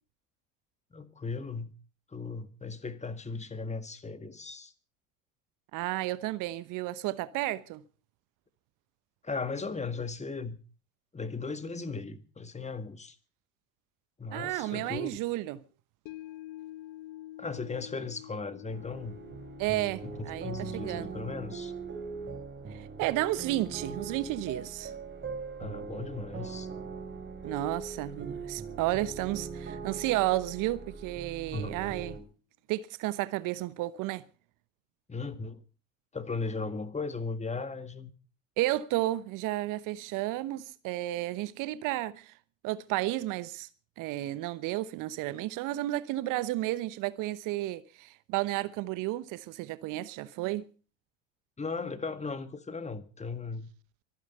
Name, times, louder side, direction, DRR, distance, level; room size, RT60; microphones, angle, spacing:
voice 1, 0.9-1.7 2.1-4.7 9.2-10.6 11.1-13.2 14.2-15.2 17.4-19.2 20.0-21.7 25.6-26.7 31.5-31.8 35.1-35.6 36.1-38.1 51.6-53.7, left 4 dB, 15° left, 1.9 m, -37 dB
voice 2, 5.7-7.8 14.3-15.6 19.6-21.1 22.7-24.9 27.4-32.2 32.7-34.2 38.6-42.3 42.6-43.7 44.0-50.7, right 16 dB, 50° right, 1.0 m, -32 dB
sound 1, 16.1-26.4 26.8-26.9, left 15 dB, 55° left, 1.1 m, -50 dB
sound 2, 18.7-32.2, right 5 dB, 25° right, 3.7 m, -41 dB
24.0 x 9.4 x 5.5 m
figure-of-eight pair, 70°, 41 cm